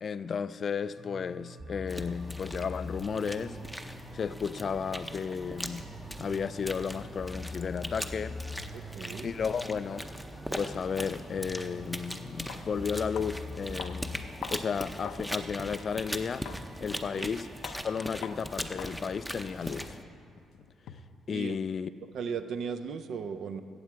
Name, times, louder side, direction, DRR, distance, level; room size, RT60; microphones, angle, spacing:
voice 1, 0.0-3.6 4.1-5.9 6.2-8.4 9.2-10.1 10.5-16.5 16.8-20.0 20.9-21.0 21.3-21.9, left 6 dB, 45° left, 0.3 m, -33 dB
sound 1, 1.0-19.2, left 1 dB, 30° right, 1.1 m, -45 dB
sound 2, 1.9-20.0, equal, ahead, 0.6 m, -40 dB
voice 2, 8.7-9.3 16.9-17.3 21.3-21.6 22.0-23.6, right 6 dB, 65° right, 0.5 m, -37 dB
sound 3, 12.5-12.7 13.2-13.4 13.8-15.3 15.7-15.8 16.5-16.7 17.1-17.3 17.6-17.8 18.2-18.4 18.8-19.0 19.3-21.2, left 7 dB, 85° left, 0.6 m, -44 dB
15.0 x 8.2 x 4.7 m
cardioid pair, 115°, 0 cm